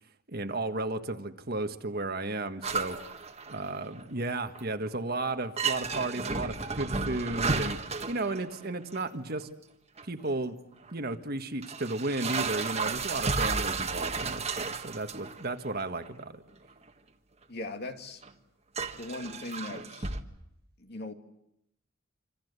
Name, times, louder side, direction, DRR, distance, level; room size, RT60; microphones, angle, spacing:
voice 1, 0.3-3.0 3.5-7.8 8.1-9.5 10.1-10.6 10.9-16.4, right 2 dB, 50° right, 1.5 m, -34 dB
sound 1, 2.6-4.1 4.4-4.8 5.2-5.3 5.6-9.0 10.0-10.1 10.9-11.0 11.6-15.4 15.8-16.1 16.9-17.0 18.2-18.3 18.8-20.2, right 4 dB, 30° right, 1.6 m, -33 dB
voice 2, 17.5-18.2 18.9-20.1 20.8-21.1, left 2 dB, 50° left, 2.2 m, -39 dB
27.0 x 26.5 x 8.2 m
head